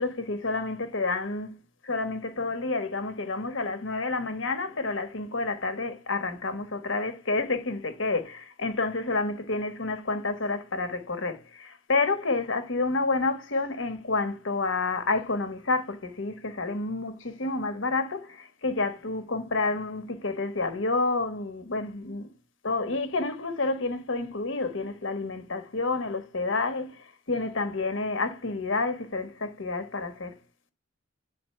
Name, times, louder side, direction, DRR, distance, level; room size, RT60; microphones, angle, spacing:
voice 1, 0.0-1.5 1.8-22.3 22.6-30.4, left 3 dB, 70° left, 1.2 m, -29 dB
8.9 x 4.0 x 3.2 m
head